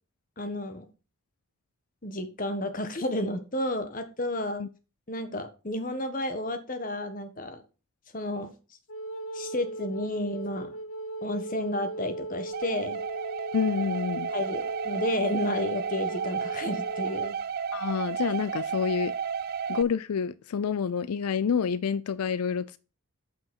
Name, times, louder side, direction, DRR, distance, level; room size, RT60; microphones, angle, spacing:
voice 1, 0.4-0.9 2.0-4.6 5.1-7.6 8.1-8.5 9.3-10.7 11.2-13.0 14.3-17.4, left 1 dB, 35° left, 1.3 m, -31 dB
Wind instrument woodwind instrument, 8.9-17.3, right 2 dB, 60° left, 1.0 m, -38 dB
sound 1, 12.5-19.8, right 7 dB, 45° right, 0.3 m, -32 dB
voice 2, 13.5-14.3 17.7-19.1 19.7-22.8, left 6 dB, 85° left, 0.4 m, -28 dB
7.9 x 5.8 x 5.9 m
head